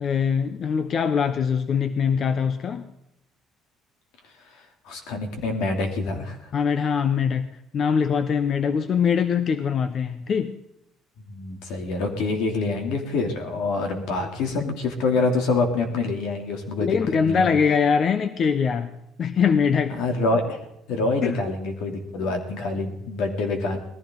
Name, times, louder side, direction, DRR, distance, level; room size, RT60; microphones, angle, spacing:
voice 1, 0.0-2.9 6.5-10.6 16.8-20.0 21.2-21.4, left 6 dB, 40° left, 11 dB, 0.8 m, -23 dB
voice 2, 4.8-6.4 11.3-16.9 17.2-17.5 19.9-20.6 20.9-23.8, left 3 dB, 80° left, 4 dB, 3.1 m, -26 dB
19.5 x 14.5 x 3.9 m, 0.80 s
cardioid pair, 140°, 0 cm